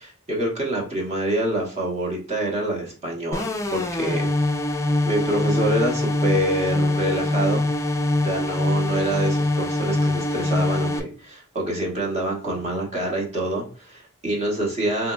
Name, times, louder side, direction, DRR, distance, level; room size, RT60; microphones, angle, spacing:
voice 1, 0.0-4.3 5.0-7.7 8.2-15.1, right 1 dB, 30° right, -1 dB, 0.9 m, -26 dB
sound 1, 3.3-11.0, left 1 dB, 15° left, 0.3 m, -23 dB
3.5 x 2.8 x 2.2 m, 0.40 s
head